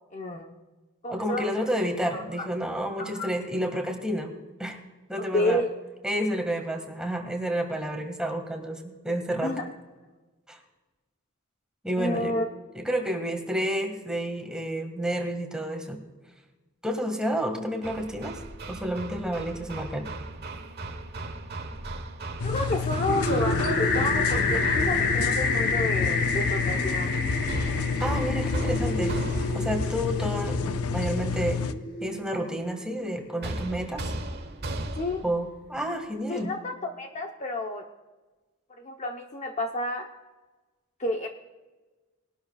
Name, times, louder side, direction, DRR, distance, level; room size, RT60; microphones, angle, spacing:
voice 1, 0.1-0.5 1.0-1.6 2.1-2.5 3.0-3.3 5.2-5.7 9.4-9.6 12.0-12.5 22.4-27.1 35.0-35.2 36.3-37.8 38.8-40.1 41.0-41.3, left 1 dB, 35° left, 2 dB, 0.9 m, -30 dB
voice 2, 1.1-4.3 4.6-4.8 5.1-5.6 6.0-9.6 10.5-10.6 11.8-12.3 12.7-16.0 16.8-18.4 18.7-20.1 28.0-29.2 29.5-31.6 32.0-34.1 35.2-36.5, equal, 5° right, 3 dB, 1.8 m, -30 dB
Hammer, 17.8-25.3 27.5-29.9 33.4-35.3, right 1 dB, 50° right, 1.2 m, -36 dB
sound 1, 22.4-31.7, left 5 dB, 80° left, 0.6 m, -29 dB
sound 2, 23.1-33.0, left 3 dB, 55° left, 1.8 m, -29 dB
21.0 x 12.0 x 2.4 m, 1.2 s
head